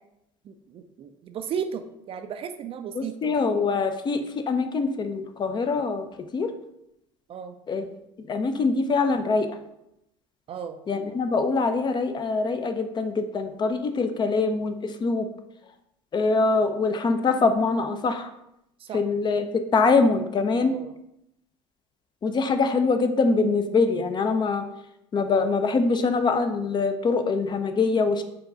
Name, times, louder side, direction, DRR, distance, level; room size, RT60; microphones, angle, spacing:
voice 1, 0.5-3.3 7.3-7.6 10.5-10.8 18.8-19.0 20.6-20.9, right 7 dB, 40° right, 8 dB, 0.4 m, -35 dB
voice 2, 3.0-4.2 4.5-6.0 6.3-6.5 7.7-7.9 8.3-9.5 10.9-14.7 15.0-15.3 16.1-18.3 18.9-19.4 19.7-20.7 22.2-24.6 25.1-28.2, left 4 dB, 30° left, 7 dB, 0.4 m, -23 dB
4.5 x 2.3 x 3.8 m, 0.81 s
hypercardioid pair, 75°, 16 cm